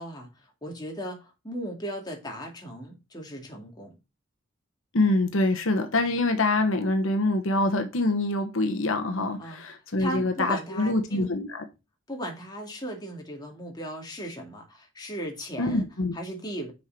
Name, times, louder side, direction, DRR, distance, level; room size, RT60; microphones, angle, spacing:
voice 1, 0.0-3.9 9.4-9.6 10.0-11.3 12.1-15.8 16.1-16.7, right 1 dB, 20° left, 2.2 m, -37 dB
voice 2, 4.9-11.6 15.6-16.1, left 2 dB, 75° left, 1.1 m, -25 dB
6.4 x 5.6 x 4.4 m
head